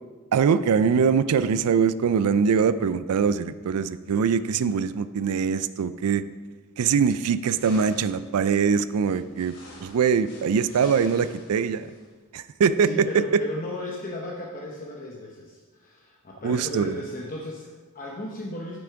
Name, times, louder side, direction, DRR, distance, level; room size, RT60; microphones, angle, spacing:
voice 1, 0.3-6.2 6.8-9.5 9.8-11.9 12.3-12.9 16.4-17.0, right 6 dB, 75° right, 14 dB, 0.4 m, -23 dB
sound 1, 7.4-8.3 9.0-12.1, left 2 dB, 75° left, 2.9 m, -48 dB
voice 2, 12.8-18.8, left 1 dB, 40° left, -2 dB, 0.8 m, -35 dB
8.5 x 6.1 x 4.6 m, 1.4 s
head